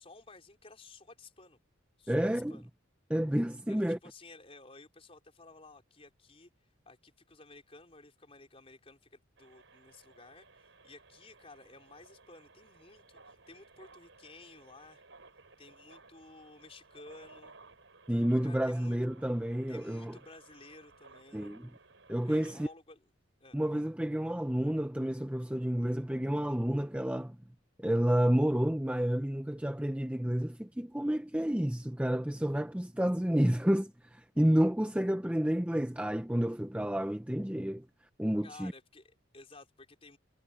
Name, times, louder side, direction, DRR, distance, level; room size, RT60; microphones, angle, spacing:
voice 1, 0.0-1.6 2.0-2.7 3.7-6.5 6.8-15.0 15.6-17.6 18.4-19.0 19.7-21.5 22.2-23.1 23.4-23.6 38.4-40.2, left 3 dB, 30° left, 4.7 m, -54 dB
voice 2, 2.1-2.5 3.1-4.0 18.1-20.2 21.3-21.7 22.1-22.7 23.5-27.4 27.8-37.9 38.2-38.7, equal, 5° right, 0.6 m, -30 dB
sound 1, 9.4-22.7, right 3 dB, 70° right, 5.6 m, -58 dB
head